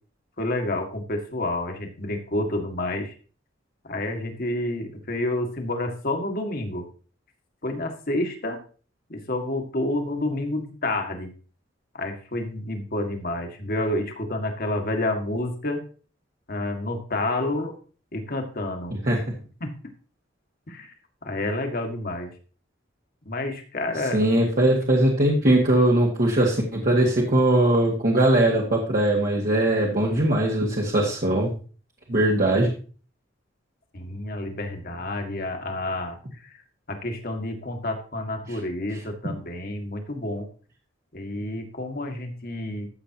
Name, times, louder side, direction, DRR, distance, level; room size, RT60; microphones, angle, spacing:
voice 1, 0.4-3.1 3.8-6.8 7.6-8.6 9.1-11.3 11.9-15.8 16.5-17.8 18.1-19.0 19.6-19.7 20.7-20.9 21.2-22.3 23.3-24.3 33.9-36.5 36.9-40.5 41.1-42.9, left 1 dB, 50° left, 5 dB, 1.8 m, -29 dB
voice 2, 24.1-31.5 32.1-32.7, right 1 dB, 50° right, -2 dB, 1.7 m, -20 dB
13.5 x 7.3 x 2.9 m, 0.38 s
head